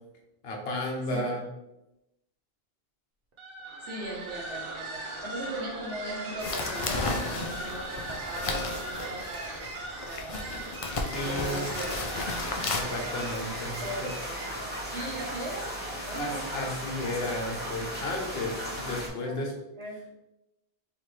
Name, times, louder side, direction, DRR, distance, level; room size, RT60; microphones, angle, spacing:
voice 1, 0.4-1.5 11.1-11.7 12.7-14.1 16.1-19.5, left 1 dB, 70° left, 0 dB, 1.2 m, -33 dB
voice 2, 1.1-1.4 3.8-10.7 11.2-12.2 12.7-13.2 13.8-16.4 18.6-19.4 19.8-19.9, right 1 dB, 90° right, -1 dB, 1.3 m, -39 dB
sound 1, 3.3-14.7, right 2 dB, 65° right, 1.0 m, -39 dB
sound 2, 6.4-12.8, left 3 dB, 45° left, 0.5 m, -34 dB
sound 3, 11.1-19.1, equal, 10° right, 0.8 m, -36 dB
4.2 x 3.2 x 3.2 m, 0.92 s
omnidirectional pair, 1.0 m